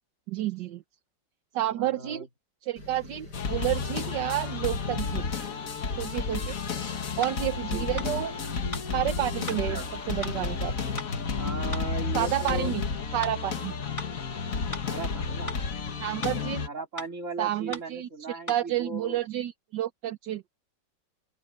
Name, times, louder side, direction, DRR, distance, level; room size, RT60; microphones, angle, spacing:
voice 1, 0.3-0.8 1.5-2.3 2.6-5.3 6.0-6.6 7.2-8.3 8.9-9.8 10.1-10.7 12.1-12.8 13.1-13.7 16.0-16.7 17.4-18.1 18.5-20.4, right 13 dB, 75° right, 1.5 m, -30 dB
voice 2, 1.7-2.3 7.7-8.0 9.7-9.9 11.4-12.7 14.8-15.5 16.2-19.2, right 2 dB, 45° right, 4.0 m, -38 dB
sound 1, 2.8-10.8, left 2 dB, 65° left, 6.9 m, -46 dB
sound 2, 3.3-16.7, left 5 dB, 50° left, 1.8 m, -32 dB
sound 3, 7.2-7.4 8.0-8.1 8.7-8.9 9.5-9.6 10.2-10.4 11.0-11.1 11.7-11.9 12.5-12.6 13.2-13.4 14.0-14.1 14.7-14.9 15.5-15.6 16.2-16.4 17.0-17.1 17.7-17.9 18.5-18.6, right 1 dB, 30° left, 3.9 m, -37 dB
open air
omnidirectional pair, 1.9 m